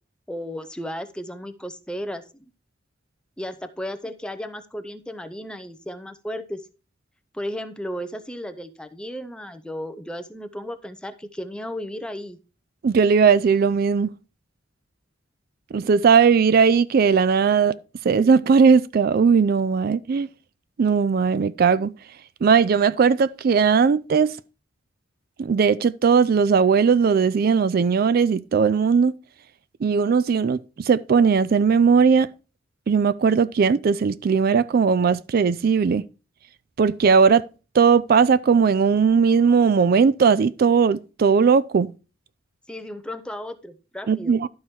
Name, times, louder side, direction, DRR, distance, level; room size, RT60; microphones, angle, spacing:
voice 1, 0.3-2.4 3.4-6.6 7.3-12.4 42.7-44.3, equal, 5° left, 0.6 m, -34 dB
voice 2, 12.8-14.1 15.7-17.7 18.0-20.3 20.8-21.9 22.4-24.3 25.4-29.1 29.8-32.3 32.9-36.0 36.8-37.4 37.7-41.9 44.1-44.5, right 6 dB, 50° right, 0.3 m, -18 dB
12.0 x 4.7 x 4.4 m
head